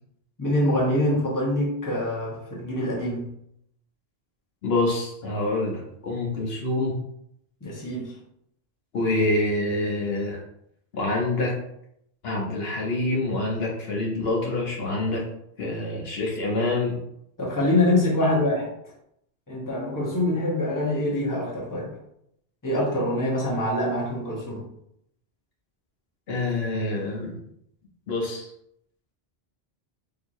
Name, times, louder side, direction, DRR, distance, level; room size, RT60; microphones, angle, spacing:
voice 1, 0.4-3.3 7.6-8.2 17.4-18.9 19.5-21.9 22.6-24.7, left 1 dB, 20° left, -4 dB, 1.0 m, -25 dB
voice 2, 4.6-7.0 8.9-10.4 10.9-11.5 12.2-15.2 15.6-17.0 26.3-27.3 28.1-28.5, left 2 dB, 70° left, -2 dB, 1.1 m, -26 dB
4.5 x 2.8 x 2.6 m, 0.76 s
omnidirectional pair, 1.1 m